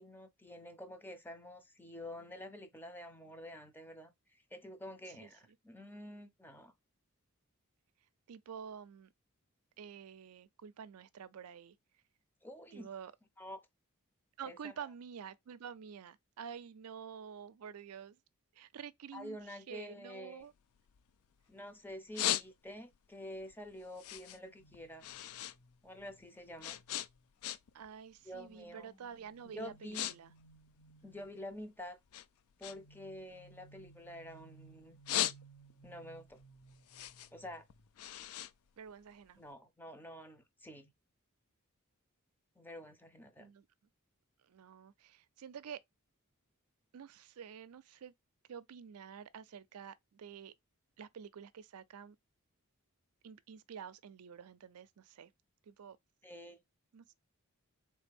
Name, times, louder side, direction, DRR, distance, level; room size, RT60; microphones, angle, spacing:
voice 1, 0.0-4.1 4.5-6.7 12.4-12.9 13.4-13.6 14.4-14.9 19.1-20.5 21.5-25.0 25.8-26.8 28.2-28.9 29.5-30.1 31.0-32.0 32.6-35.0 35.8-36.4 37.3-37.7 39.4-40.9 42.6-43.5 56.2-56.6, left 1 dB, 10° left, 0.6 m, -48 dB
voice 2, 8.3-9.1 9.8-11.8 12.7-13.1 14.4-18.2 18.5-20.5 27.7-30.3 38.8-39.4 43.4-43.6 44.5-45.8 46.9-48.1 48.5-50.5 51.0-52.2 53.2-55.3 55.7-56.0 56.9-57.1, right 7 dB, 80° right, 0.4 m, -49 dB
sound 1, 20.4-21.5 21.9-23.0 23.4-25.6 25.9-27.9 28.2-28.5 29.1-29.3 29.6-30.1 30.4-31.6 32.1-34.4 34.8-35.9 36.3-39.4, left 12 dB, 70° left, 0.4 m, -39 dB
sound 2, 24.2-27.8 28.4-31.6 32.7-37.9 38.2-38.4, right 3 dB, 55° left, 1.0 m, -62 dB
4.1 x 3.2 x 3.4 m
head